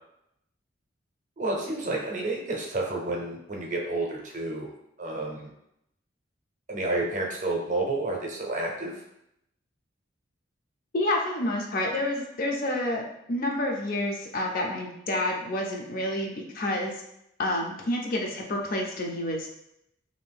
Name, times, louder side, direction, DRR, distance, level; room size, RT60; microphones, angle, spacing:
voice 1, 1.4-4.7 5.0-5.5 6.7-9.0, right 2 dB, 40° right, -1 dB, 0.6 m, -30 dB
voice 2, 10.9-13.0 13.3-17.0 17.4-19.5, left 1 dB, 45° left, 0 dB, 0.5 m, -29 dB
2.6 x 2.5 x 3.4 m, 0.81 s
head